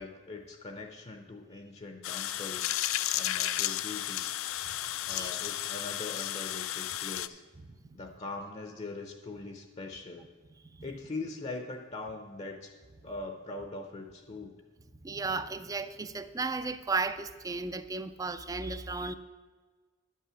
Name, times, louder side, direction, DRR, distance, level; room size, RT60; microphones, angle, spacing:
voice 1, 0.0-4.3 5.0-7.4 7.9-10.3 10.8-12.7 13.0-14.5, left 3 dB, 30° left, 5 dB, 0.6 m, -42 dB
sound 1, 2.0-7.3, left 13 dB, 75° left, 0.4 m, -33 dB
voice 2, 7.7-8.0 15.0-19.1, right 3 dB, 15° right, 11 dB, 0.4 m, -34 dB
11.0 x 5.6 x 6.2 m, 1.4 s
head